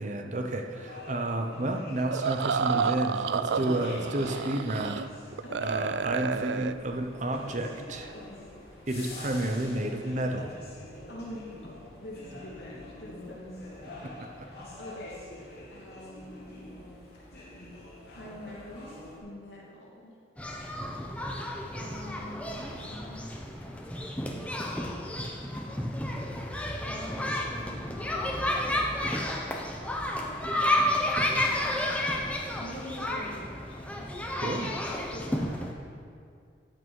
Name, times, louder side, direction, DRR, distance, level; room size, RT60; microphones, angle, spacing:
voice 1, 0.0-5.0 5.6-8.1 8.9-10.6 14.0-14.5 34.4-34.7, right 1 dB, 40° right, 4 dB, 0.8 m, -31 dB
sound 1, 0.7-19.2, left 1 dB, 55° left, 2.8 m, -47 dB
sound 2, 2.1-5.1 5.3-6.7, right 6 dB, 70° right, 0.4 m, -30 dB
voice 2, 3.7-4.7 5.4-6.0 8.1-8.6 11.1-16.8 17.2-17.4 18.0-20.1 21.7-23.9 24.3-24.5 25.0-26.5 26.8-27.9 29.9-31.1 32.3-34.0 34.5-35.9, left 1 dB, 75° left, -4 dB, 2.6 m, -46 dB
sound 3, 20.4-35.7, left 1 dB, 5° left, 0.8 m, -31 dB
14.0 x 8.9 x 4.7 m, 2.3 s
head